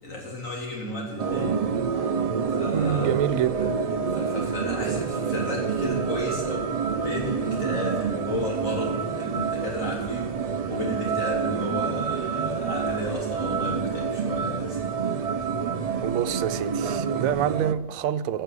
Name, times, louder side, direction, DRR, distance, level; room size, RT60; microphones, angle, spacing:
voice 1, 0.0-2.1 2.5-3.1 4.2-15.3, left 1 dB, 70° left, 3.6 m, -33 dB
sound 1, 1.2-17.7, right 6 dB, 65° right, 0.3 m, -28 dB
voice 2, 2.7-3.7 16.0-18.4, right 10 dB, 80° right, 1.0 m, -26 dB
14.5 x 6.1 x 8.3 m
omnidirectional pair, 1.4 m